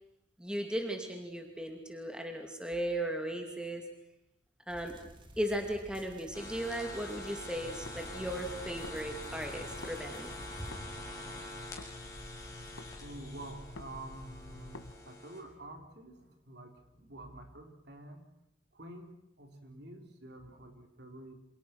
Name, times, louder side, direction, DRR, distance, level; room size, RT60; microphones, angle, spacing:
voice 1, 0.4-3.8 4.7-5.0 5.4-10.7, right 1 dB, 5° right, 3 dB, 2.5 m, -37 dB
sound 1, 4.7-10.8, equal, 25° right, 2.6 m, -52 dB
sound 2, 6.3-15.4, left 2 dB, 15° left, 6.1 m, -46 dB
sound 3, 7.5-10.0 10.3-14.9, left 1 dB, 80° left, 1.9 m, -49 dB
voice 2, 13.0-18.3 18.7-21.3, right 1 dB, 55° right, 4 dB, 4.0 m, -48 dB
29.0 x 27.0 x 6.1 m, 0.80 s
head